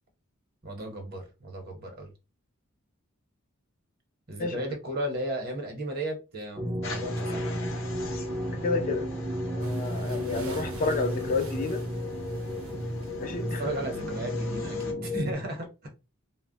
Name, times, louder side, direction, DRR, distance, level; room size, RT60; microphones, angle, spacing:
voice 1, 0.6-2.1 4.3-7.5 13.6-15.9, right 1 dB, 45° right, 0.8 m, -35 dB
sound 1, 6.6-15.3, equal, 25° right, 0.4 m, -33 dB
sound 2, 6.8-14.9, left 3 dB, 65° left, 0.7 m, -44 dB
voice 2, 8.5-9.1 9.5-11.8 13.2-13.6, left 3 dB, 40° left, 0.4 m, -30 dB
sound 3, 9.6-14.2, right 2 dB, 85° right, 0.7 m, -48 dB
2.1 x 2.0 x 3.7 m
head